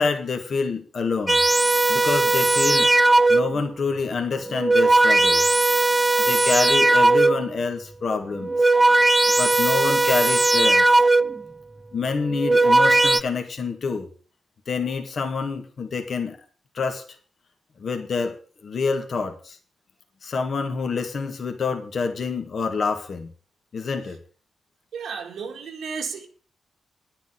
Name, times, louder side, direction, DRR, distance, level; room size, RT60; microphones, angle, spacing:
voice 1, 0.0-1.4 1.9-2.9 3.3-5.6 6.3-8.5 9.4-11.0 11.9-14.1 14.7-16.4 16.7-17.0 17.8-18.3 18.6-19.6 20.2-23.3 23.7-24.2, left 4 dB, 60° left, 1.7 m, -27 dB
sound 1, 1.3-3.7 4.4-7.6 8.3-11.5 12.2-13.2, right 2 dB, 15° right, 0.6 m, -18 dB
voice 2, 24.9-26.3, right 6 dB, 85° right, 2.2 m, -33 dB
10.0 x 6.8 x 7.9 m
cardioid pair, 65°, 0 cm